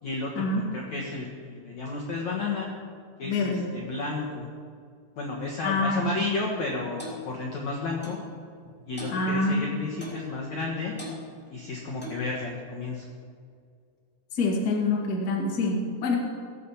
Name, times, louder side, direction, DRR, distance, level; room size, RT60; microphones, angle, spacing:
voice 1, 0.0-0.4 0.7-2.7 3.2-4.5 5.2-8.2 8.9-10.9 11.5-13.1, left 3 dB, 65° left, -2 dB, 1.8 m, -32 dB
voice 2, 3.2-3.7 5.6-6.3 9.1-9.7 14.3-16.2, left 2 dB, 40° left, -1 dB, 1.3 m, -26 dB
Clock, 7.0-7.2 8.0-8.2 9.0-9.2 10.0-10.2 11.0-11.2 12.0-12.3, left 1 dB, 5° left, 2.0 m, -39 dB
19.0 x 8.5 x 5.7 m, 2.2 s
omnidirectional pair, 5.2 m